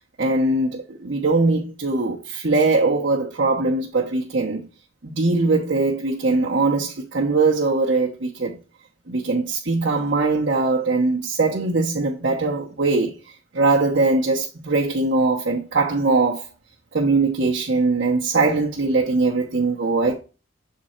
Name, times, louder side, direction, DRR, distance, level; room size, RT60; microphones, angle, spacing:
voice 1, 0.2-4.7 5.0-8.5 9.1-16.4 16.9-20.2, right 3 dB, 60° right, 0.9 m, -21 dB
7.6 x 3.8 x 4.3 m
head